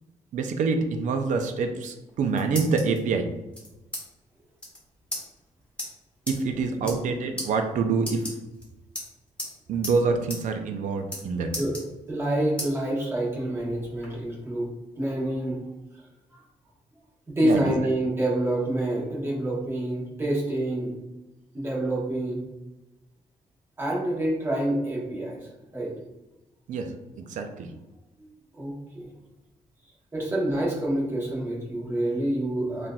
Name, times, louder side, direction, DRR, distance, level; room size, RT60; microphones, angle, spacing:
voice 1, 0.3-3.3 6.3-8.3 9.7-11.5 17.4-17.6 26.7-26.9 27.2-27.7, right 4 dB, 75° right, 6 dB, 0.5 m, -26 dB
sound 1, 2.0-3.0 3.5-4.0 4.3-4.4 4.6-4.8 5.1-5.2 5.8-5.9 6.3-6.4 6.8-7.1 7.4-7.5 8.0-8.6 9.0-9.5 9.8-10.0 10.3-10.4 10.7-11.2 11.5-12.2 12.6-12.7 13.2-14.1, left 1 dB, 10° left, 1.1 m, -35 dB
voice 2, 12.1-14.7 15.0-15.6 17.3-20.9 21.5-22.4 23.8-25.5 25.7-25.9 28.2-29.1 30.1-32.9, right 1 dB, 20° right, -4 dB, 1.1 m, -27 dB
5.6 x 2.5 x 2.2 m, 1.0 s
cardioid pair, 145°, 13 cm